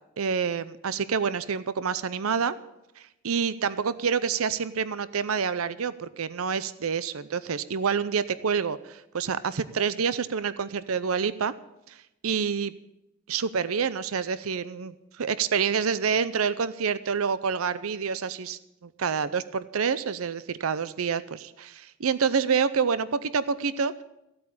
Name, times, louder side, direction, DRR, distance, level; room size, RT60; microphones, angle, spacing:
voice 1, 0.2-2.6 3.0-11.5 11.9-12.0 12.2-12.7 13.3-24.0, right 6 dB, 80° right, 16 dB, 0.6 m, -27 dB
15.5 x 8.6 x 8.4 m, 0.89 s
head